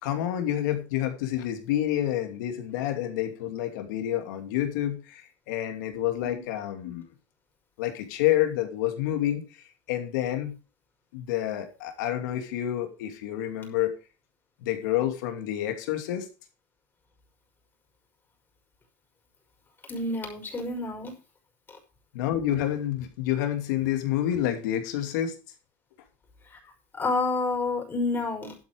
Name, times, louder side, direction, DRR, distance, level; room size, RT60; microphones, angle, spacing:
voice 1, 0.0-7.0 7.8-10.6 11.1-13.9 14.6-16.3 22.1-25.3, left 12 dB, 85° left, 6 dB, 2.7 m, -28 dB
voice 2, 19.9-21.1 21.7-21.8 26.4-26.6 26.9-28.6, left 3 dB, 20° left, 2 dB, 5.7 m, -29 dB
12.0 x 8.8 x 4.8 m, 0.32 s
supercardioid pair, 125°, 10 cm